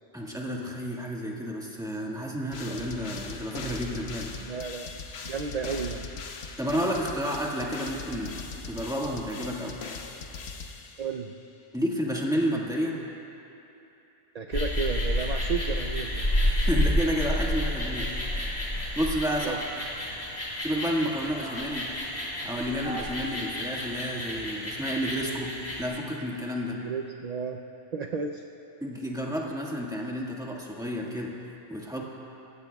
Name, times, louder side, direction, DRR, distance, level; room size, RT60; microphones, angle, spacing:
voice 1, 0.1-4.5 6.6-9.8 11.7-13.0 16.4-18.5 18.9-19.6 20.6-21.9 22.4-26.8 28.8-31.3 31.7-32.0, equal, 5° right, -3 dB, 1.7 m, -31 dB
sound 1, 2.5-11.3, left 4 dB, 65° left, 1.1 m, -40 dB
voice 2, 4.4-4.9 5.2-6.1 11.0-11.3 14.3-16.3 19.4-19.6 26.8-27.6 27.9-28.4, right 5 dB, 50° right, 4 dB, 0.5 m, -32 dB
sound 2, 14.5-25.8, left 1 dB, 50° left, 3.2 m, -30 dB
27.5 x 15.5 x 2.3 m, 2.9 s
omnidirectional pair, 1.2 m